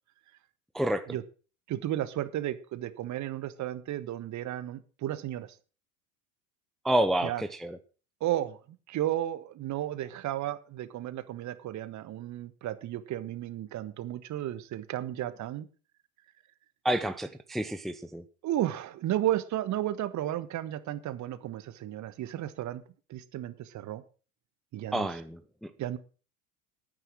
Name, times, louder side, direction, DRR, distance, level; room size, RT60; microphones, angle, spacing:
voice 1, 0.7-1.1 6.8-7.8 16.8-18.2 24.9-25.7, right 1 dB, ahead, 10 dB, 0.7 m, -29 dB
voice 2, 1.7-5.5 7.2-7.4 8.2-8.6 8.9-15.7 18.4-22.8 23.1-24.0 24.7-25.1 25.8-26.0, right 13 dB, 40° right, 14 dB, 1.3 m, -33 dB
10.5 x 9.1 x 6.3 m, 0.37 s
hypercardioid pair, 75°, 44 cm